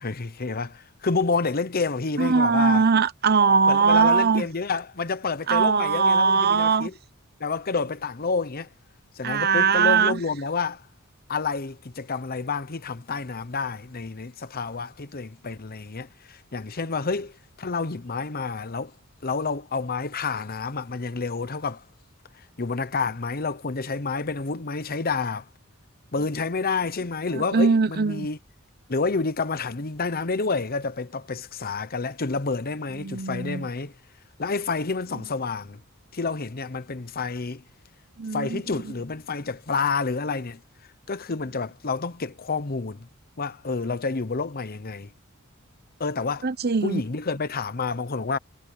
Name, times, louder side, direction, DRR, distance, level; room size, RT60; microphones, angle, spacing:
voice 1, 0.0-2.9 3.7-6.9 7.4-8.7 9.2-10.8 11.3-17.3 17.6-18.9 19.2-21.8 22.6-25.4 26.1-28.4 28.9-33.9 34.4-35.8 36.1-37.6 38.3-40.6 41.1-43.1 43.4-45.1 46.0-46.5 46.8-48.4, left 4 dB, 45° left, 0.9 m, -29 dB
voice 2, 2.2-4.5 5.5-6.9 9.2-10.2 27.3-28.3 32.9-33.7 38.2-38.6 46.4-47.0, right 5 dB, 50° right, 1.0 m, -21 dB
head